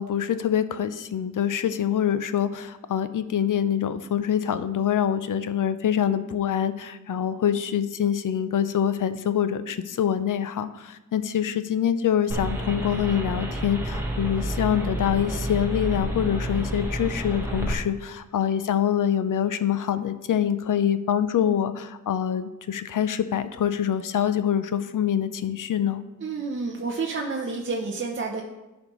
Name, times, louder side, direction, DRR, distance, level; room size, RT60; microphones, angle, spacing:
voice 1, 0.0-26.0, left 9 dB, 75° left, 12 dB, 0.5 m, -25 dB
sound 1, 12.3-17.7, right 1 dB, 10° right, 1.3 m, -30 dB
voice 2, 26.2-28.4, right 4 dB, 40° right, 0 dB, 0.7 m, -29 dB
13.0 x 5.2 x 3.1 m, 1.1 s
wide cardioid pair, 140°, 32 cm